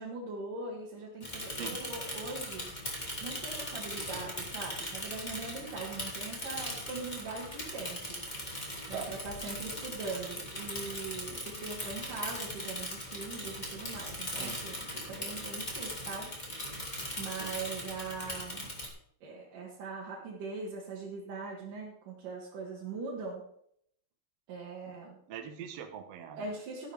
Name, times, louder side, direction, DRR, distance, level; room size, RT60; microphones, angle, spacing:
voice 1, 0.0-2.7 3.2-8.2 8.9-16.3 17.2-18.7 19.2-23.4 24.5-25.2 26.4-26.9, right 3 dB, 55° right, -3 dB, 3.3 m, -41 dB
Bicycle / Mechanisms, 1.2-18.9, left 1 dB, 15° left, 1.9 m, -39 dB
voice 2, 25.3-26.5, right 8 dB, 75° right, 5 dB, 1.5 m, -42 dB
14.5 x 11.5 x 3.5 m, 0.69 s
omnidirectional pair, 4.8 m